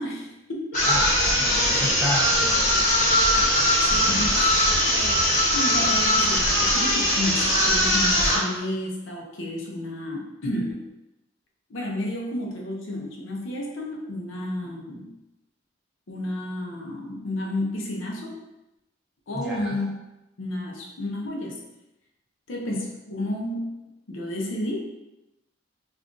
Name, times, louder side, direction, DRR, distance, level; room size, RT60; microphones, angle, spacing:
voice 1, 0.0-1.1 1.6-1.8 3.2-10.8 11.7-15.1 16.1-18.4 19.3-19.9 20.4-21.6 22.5-23.7 24.1-24.9, left 1 dB, 85° left, -1 dB, 0.6 m, -32 dB
sound 1, 0.7-8.5, equal, 40° left, 1.2 m, -21 dB
voice 2, 0.8-2.6 19.3-19.8, left 1 dB, ahead, -6 dB, 0.6 m, -30 dB
2.5 x 2.3 x 3.7 m, 0.94 s
head